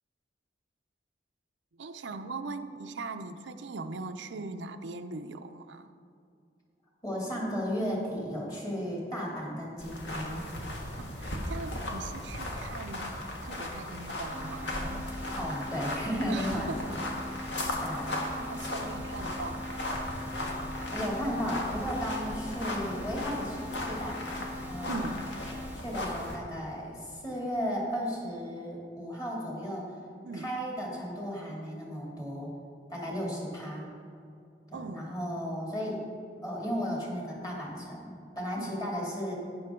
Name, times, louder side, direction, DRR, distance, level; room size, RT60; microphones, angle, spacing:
voice 1, 1.7-5.9 11.0-15.1 16.3-16.9 18.1-20.0 24.9-25.3 30.2-30.5 34.7-35.1 38.6-38.7, right 3 dB, 85° right, 8 dB, 0.6 m, -40 dB
voice 2, 7.0-10.4 15.4-16.9 17.2-17.5 17.8-18.2 20.9-25.2 25.7-30.0 30.3-32.5 32.9-33.9 34.7-36.1 36.4-39.4, equal, 20° left, -3 dB, 2.7 m, -35 dB
sound 1, 9.8-26.4, left 1 dB, 80° left, 1.7 m, -36 dB
sound 2, 14.3-25.7, left 1 dB, 10° right, 0.7 m, -43 dB
12.0 x 9.8 x 3.7 m, 2.5 s
head